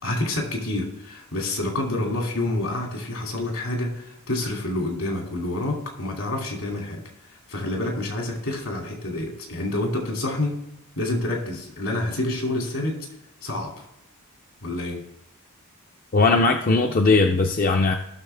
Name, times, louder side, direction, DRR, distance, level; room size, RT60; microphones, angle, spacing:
voice 1, 0.0-7.0 7.5-10.6 11.0-13.1 13.4-13.9 14.6-15.0, left 2 dB, 75° left, 0 dB, 2.6 m, -28 dB
voice 2, 16.1-18.0, left 3 dB, 40° left, 4 dB, 0.5 m, -19 dB
15.5 x 6.3 x 3.4 m, 0.83 s
head